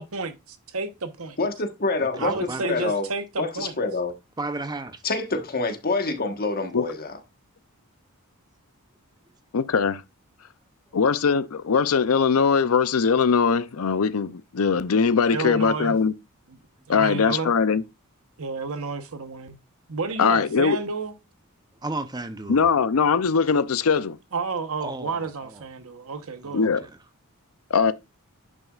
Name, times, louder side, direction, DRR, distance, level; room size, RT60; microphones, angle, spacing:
voice 1, 0.0-1.4 2.2-3.7 15.3-16.0 16.9-17.5 18.4-19.6 19.9-21.1 24.3-26.9, right 4 dB, 70° right, 1.0 m, -31 dB
voice 2, 1.4-2.3 2.6-3.1 3.4-4.1 5.0-7.2, left 3 dB, 45° left, 1.3 m, -26 dB
voice 3, 2.0-2.7 4.4-5.0 21.8-22.7 24.8-25.6 26.4-27.0, right 2 dB, 20° right, 0.7 m, -34 dB
voice 4, 9.5-10.0 10.9-16.1 16.9-17.8 20.2-20.8 22.5-24.2 26.5-26.8 27.7-27.9, left 5 dB, 70° left, 0.5 m, -21 dB
10.5 x 6.3 x 2.4 m
head